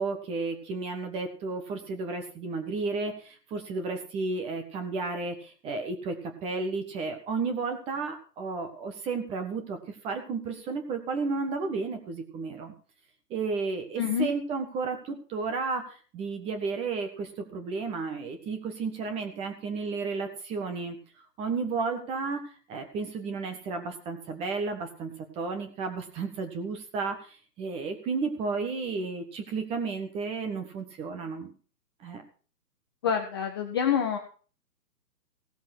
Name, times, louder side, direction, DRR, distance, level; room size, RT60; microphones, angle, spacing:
voice 1, 0.0-12.7 13.3-21.0 21.4-31.5 32.0-32.2, right 4 dB, 10° right, 6 dB, 1.4 m, -33 dB
voice 2, 14.0-14.3 33.0-34.2, left 8 dB, 15° left, 2 dB, 0.7 m, -26 dB
16.5 x 7.4 x 6.1 m, 0.40 s
hypercardioid pair, 150°, 50 cm